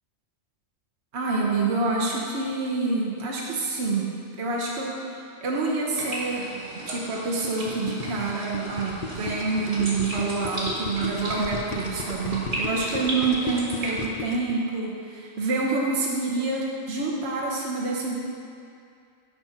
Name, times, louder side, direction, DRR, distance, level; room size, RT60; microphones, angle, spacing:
voice 1, 1.1-4.1 4.4-4.9 5.4-18.2, right 3 dB, 60° right, -3 dB, 1.2 m, -27 dB
sound 1, 5.9-14.1, right 1 dB, 85° right, 2.1 m, -35 dB
Gurgling, 7.4-14.5, left 4 dB, 50° left, 0.8 m, -35 dB
10.5 x 6.1 x 4.4 m, 2.4 s
omnidirectional pair, 1.3 m